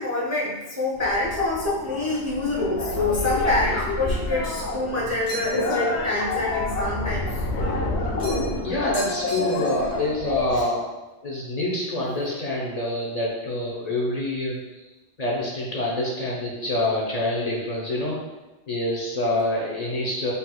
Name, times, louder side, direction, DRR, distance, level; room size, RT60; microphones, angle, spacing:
voice 1, 0.0-7.4 10.5-10.7, left 2 dB, 20° right, -5 dB, 0.4 m, -26 dB
sound 1, 1.0-10.6, left 2 dB, 90° left, 1.0 m, -28 dB
sound 2, 5.3-5.8 8.2-8.6 8.9-9.9, right 2 dB, 5° right, 1.3 m, -36 dB
voice 2, 8.6-10.9 11.2-14.6 15.2-18.2 18.7-20.3, left 1 dB, 45° left, -4 dB, 0.7 m, -26 dB
4.0 x 4.0 x 2.3 m, 1.1 s
omnidirectional pair, 1.1 m